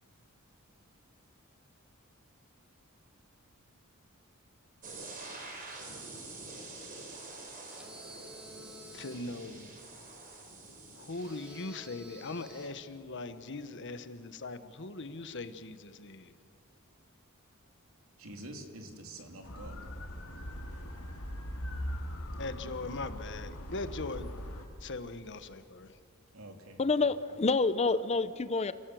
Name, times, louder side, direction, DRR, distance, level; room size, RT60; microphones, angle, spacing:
sound 1, 4.8-11.6, right 2 dB, 40° right, 4.4 m, -47 dB
sound 2, 7.6-9.3 11.1-12.9, equal, 5° right, 2.3 m, -51 dB
voice 1, 8.9-9.7 10.9-16.3 22.4-24.3 24.8-26.0, left 3 dB, 55° left, 11 dB, 1.2 m, -40 dB
voice 2, 18.2-19.8 26.3-26.8, right 1 dB, 70° right, 4 dB, 3.1 m, -46 dB
sound 3, 19.4-24.6, equal, 85° left, 3.1 m, -40 dB
voice 3, 26.8-28.7, left 3 dB, 30° left, 14 dB, 0.6 m, -28 dB
29.0 x 17.5 x 7.8 m, 2.4 s
head